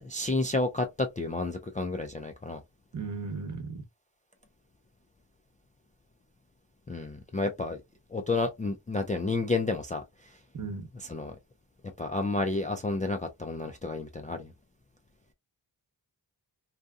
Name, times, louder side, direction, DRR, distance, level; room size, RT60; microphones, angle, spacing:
voice 1, 0.0-2.6 6.9-7.8 8.1-10.4 10.9-11.4 12.0-14.5, left 2 dB, 20° left, 0.3 m, -31 dB
voice 2, 2.9-3.8 10.5-10.9, right 4 dB, 40° right, 0.9 m, -36 dB
2.7 x 2.3 x 2.3 m
wide cardioid pair, 70°, 44 cm